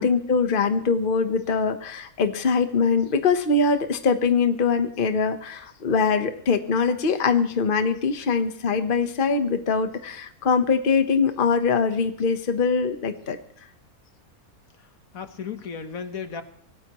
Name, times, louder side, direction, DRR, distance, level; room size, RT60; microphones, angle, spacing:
voice 1, 0.0-13.4, left 5 dB, 40° left, 8 dB, 1.2 m, -22 dB
voice 2, 15.1-16.4, left 6 dB, 70° left, 8 dB, 1.6 m, -34 dB
25.5 x 17.0 x 3.1 m, 0.62 s
omnidirectional pair, 1.5 m